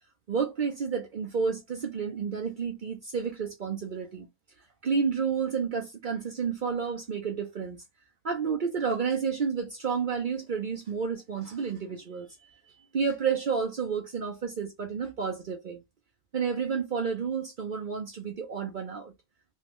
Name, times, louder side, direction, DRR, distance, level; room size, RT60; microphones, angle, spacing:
voice 1, 0.3-4.3 4.8-7.8 8.2-12.3 12.9-15.8 16.3-19.1, right 6 dB, 75° right, 0.4 m, -30 dB
3.1 x 2.7 x 3.0 m
omnidirectional pair, 1.7 m